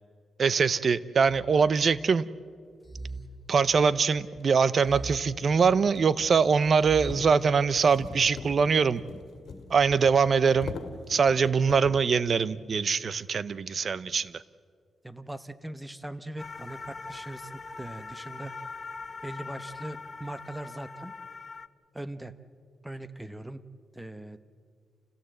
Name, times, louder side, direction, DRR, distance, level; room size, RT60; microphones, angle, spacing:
voice 1, 0.4-2.3 3.5-9.0 9.7-10.7 11.1-14.4, right 5 dB, 50° right, 17 dB, 0.7 m, -23 dB
sound 1, 1.2-2.2 2.8-4.1 4.8-6.1 6.8-7.9, right 2 dB, 15° left, 2.1 m, -43 dB
sound 2, 3.3-3.4 4.1-12.1, left 5 dB, 70° left, 2.3 m, -44 dB
voice 2, 15.0-18.6 19.2-21.1 21.9-22.4 22.8-23.6 23.9-24.4, right 1 dB, 10° right, 12 dB, 1.1 m, -40 dB
sound 3, 16.4-21.7, left 4 dB, 35° left, 0.7 m, -42 dB
28.5 x 16.0 x 7.9 m, 2.1 s
cardioid pair, 85°, 0 cm